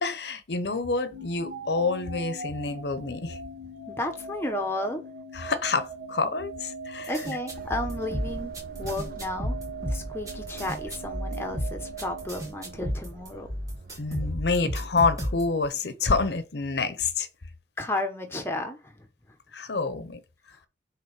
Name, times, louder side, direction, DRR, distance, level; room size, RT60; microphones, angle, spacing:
voice 1, 0.0-3.4 5.3-7.2 13.3-13.4 14.0-17.3 19.5-20.2, left 4 dB, 75° left, 0.8 m, -28 dB
sound 1, 1.1-13.2, right 3 dB, 70° right, 1.9 m, -40 dB
voice 2, 3.9-5.0 7.1-8.5 8.8-9.6 9.9-13.5 17.8-18.9, left 1 dB, 15° left, 1.0 m, -32 dB
sound 2, 7.0-15.7, equal, 20° right, 2.0 m, -32 dB
sound 3, 7.5-14.3, right 2 dB, 50° right, 0.6 m, -45 dB
5.7 x 3.6 x 4.9 m
head